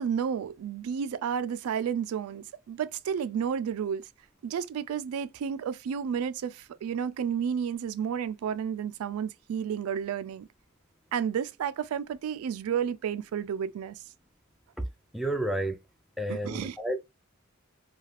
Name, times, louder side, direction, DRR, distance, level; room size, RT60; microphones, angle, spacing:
voice 1, 0.0-4.1 4.4-10.5 11.1-14.0 16.3-16.8, right 7 dB, 85° right, 0.3 m, -31 dB
voice 2, 15.1-15.8 16.2-17.0, right 1 dB, ahead, 0.3 m, -30 dB
3.2 x 2.3 x 2.3 m
head